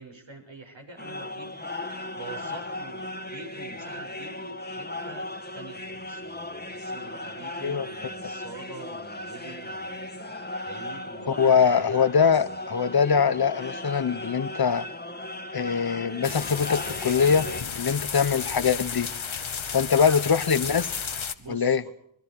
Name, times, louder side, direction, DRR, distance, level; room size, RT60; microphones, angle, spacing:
voice 1, 0.0-12.0 12.3-12.6 13.3-13.4 19.8-20.3 21.4-21.8, right 2 dB, 70° right, 6.9 m, -45 dB
sound 1, 1.0-17.6, left 1 dB, 20° left, 1.9 m, -37 dB
voice 2, 11.4-14.8 15.5-17.5 17.7-19.1 19.7-20.9 21.5-21.8, left 6 dB, 50° left, 1.1 m, -22 dB
sound 2, 16.2-21.3, left 6 dB, 85° left, 1.5 m, -33 dB
27.5 x 21.5 x 4.8 m
wide cardioid pair, 70°, 46 cm